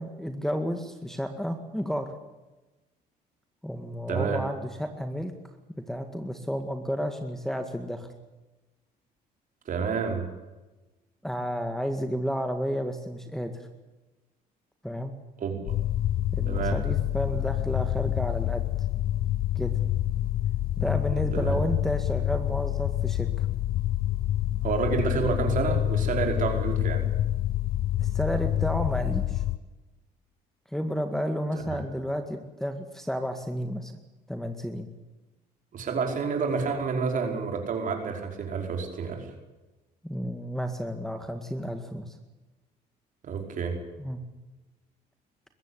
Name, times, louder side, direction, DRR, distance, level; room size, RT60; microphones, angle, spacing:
voice 1, 0.0-2.1 3.6-5.3 5.8-8.1 11.2-13.6 14.8-15.1 16.3-18.6 19.6-19.7 20.8-23.5 28.0-29.4 30.7-33.9 34.3-34.9 40.0-42.2 44.0-44.2, equal, ahead, 5 dB, 1.9 m, -31 dB
voice 2, 4.1-4.4 9.7-10.2 15.4-15.6 16.5-16.8 21.1-21.6 24.6-27.0 31.5-31.8 35.7-39.3 43.2-43.8, right 5 dB, 50° right, 3 dB, 5.2 m, -29 dB
sound 1, 15.7-29.6, left 13 dB, 60° left, 0.7 m, -27 dB
21.5 x 15.0 x 9.9 m, 1.1 s
cardioid pair, 110°, 17 cm